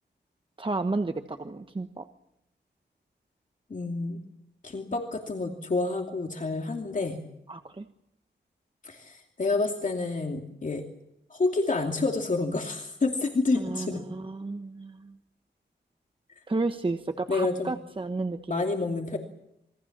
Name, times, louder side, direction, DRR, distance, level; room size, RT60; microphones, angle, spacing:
voice 1, 0.6-2.1 7.5-7.9 13.6-15.2 16.5-18.6, right 3 dB, 30° right, 7 dB, 1.2 m, -32 dB
voice 2, 3.7-4.2 4.6-7.2 8.8-10.8 11.3-14.0 17.3-17.7 18.5-19.2, left 3 dB, 45° left, 2 dB, 2.7 m, -28 dB
27.5 x 22.5 x 7.4 m, 0.81 s
wide cardioid pair, 125°, 19 cm